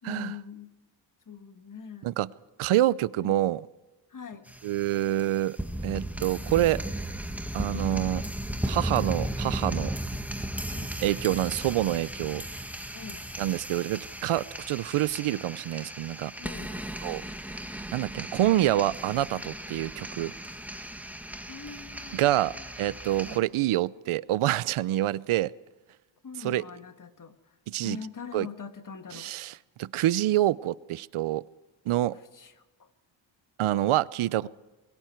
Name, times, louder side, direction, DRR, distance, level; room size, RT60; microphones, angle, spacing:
voice 1, 0.0-0.7 1.3-2.2 3.2-3.4 4.1-4.5 10.1-10.4 10.7-11.0 12.9-13.3 16.4-16.9 21.5-22.7 23.2-23.5 26.2-27.6 27.8-29.3 32.1-32.9 34.4-34.5, left 6 dB, 40° left, 8 dB, 1.8 m, -43 dB
voice 2, 2.6-3.6 4.6-5.6 5.8-6.8 7.5-8.2 8.7-9.9 11.0-12.4 13.4-16.3 17.0-17.2 17.9-20.3 22.1-22.5 22.8-25.5 26.4-26.6 27.7-28.0 28.3-28.5 29.2-29.5 29.8-31.4 31.9-32.1 33.6-34.5, right 14 dB, 85° right, 19 dB, 0.7 m, -26 dB
sound 1, 4.5-23.4, right 1 dB, 5° right, 1.3 m, -36 dB
27.5 x 22.0 x 4.6 m, 1.1 s
cardioid pair, 100°, 48 cm